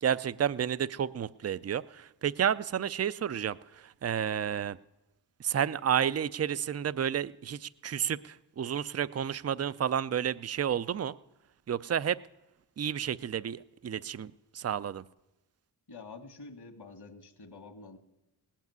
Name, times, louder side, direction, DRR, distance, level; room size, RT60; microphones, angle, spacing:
voice 1, 0.0-4.8 5.4-11.1 11.7-12.2 12.8-15.0, right 9 dB, 35° right, 17 dB, 0.5 m, -31 dB
voice 2, 15.9-18.0, left 3 dB, 60° left, 7 dB, 2.0 m, -48 dB
17.5 x 7.5 x 9.4 m, 0.97 s
cardioid pair, 45°, 45 cm